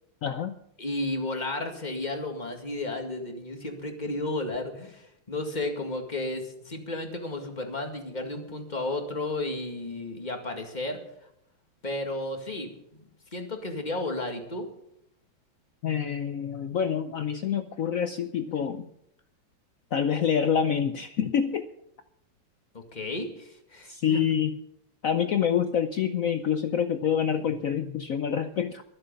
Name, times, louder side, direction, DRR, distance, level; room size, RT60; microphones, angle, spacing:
voice 1, 0.2-0.6 15.8-18.9 19.9-21.7 23.9-24.6 25.0-28.8, left 8 dB, 85° left, 10 dB, 0.7 m, -27 dB
voice 2, 0.8-11.0 11.8-12.7 13.3-14.7 22.7-24.2, left 2 dB, 20° left, 4 dB, 2.0 m, -33 dB
23.0 x 7.8 x 5.4 m, 0.77 s
omnidirectional pair, 2.3 m